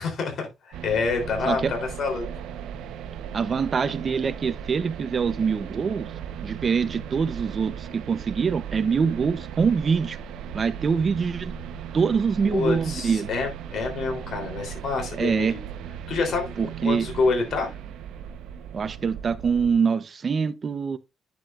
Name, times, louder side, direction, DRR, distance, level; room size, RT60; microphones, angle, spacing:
voice 1, 0.0-2.2 12.4-15.6 16.1-17.7, left 4 dB, 60° left, 3.4 m, -27 dB
sound 1, 0.7-19.7, right 8 dB, 85° right, 0.9 m, -37 dB
voice 2, 3.3-6.1 6.4-10.2 10.5-11.5 11.9-13.3 15.2-15.6 16.6-17.1 18.7-21.0, right 6 dB, 45° right, 0.8 m, -24 dB
9.6 x 7.3 x 2.5 m
cardioid pair, 90°, 0 cm